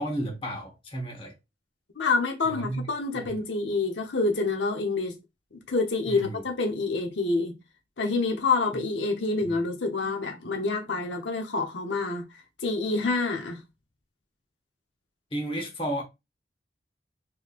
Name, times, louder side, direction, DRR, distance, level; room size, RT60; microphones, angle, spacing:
voice 1, 0.0-1.3 2.4-2.9 3.1-3.3 6.1-6.4 9.4-9.6 15.3-16.0, right 1 dB, 30° left, 1.1 m, -33 dB
voice 2, 2.0-5.2 5.7-7.5 8.0-12.2 12.6-13.6, left 3 dB, 90° left, 0.9 m, -27 dB
3.9 x 3.1 x 2.4 m
head